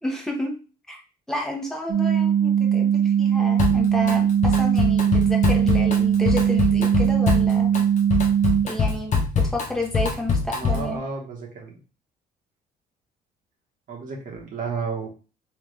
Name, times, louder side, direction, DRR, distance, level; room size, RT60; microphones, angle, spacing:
voice 1, 0.0-0.6 0.9-1.0 1.3-7.7 8.6-11.0, left 1 dB, 5° left, 0 dB, 1.2 m, -31 dB
sound 1, 1.9-8.6, right 9 dB, 35° right, 0.8 m, -20 dB
Drum kit, 3.6-4.1 4.4-11.0, left 5 dB, 45° left, 1.1 m, -24 dB
voice 2, 10.5-11.8 13.9-15.1, right 5 dB, 50° right, -1 dB, 1.5 m, -32 dB
3.5 x 3.4 x 3.4 m, 0.35 s
cardioid pair, 110°, 17 cm